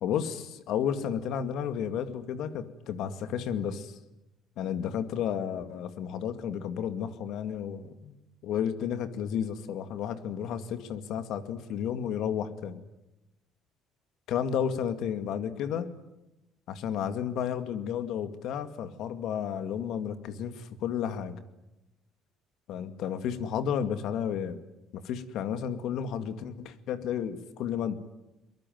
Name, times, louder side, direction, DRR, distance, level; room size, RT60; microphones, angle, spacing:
voice 1, 0.0-4.0 4.6-8.1 8.4-12.8 14.3-15.9 16.7-21.4 22.7-24.6 24.9-27.9, left 8 dB, 70° left, 10 dB, 2.3 m, -32 dB
23.0 x 22.0 x 9.4 m, 0.94 s
supercardioid pair, 80°, 0 cm